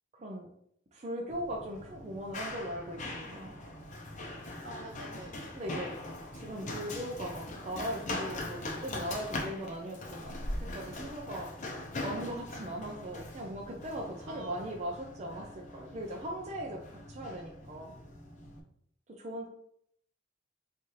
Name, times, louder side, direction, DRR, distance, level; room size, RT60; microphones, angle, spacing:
voice 1, 0.9-3.6 5.5-5.9 6.3-17.9 19.2-19.5, equal, 35° right, 0 dB, 0.4 m, -39 dB
Run, 1.3-18.6, left 1 dB, 40° left, 0.6 m, -41 dB
voice 2, 4.6-5.3 14.3-14.7, right 2 dB, 70° right, 2 dB, 0.8 m, -46 dB
4.0 x 2.5 x 3.1 m, 0.68 s
head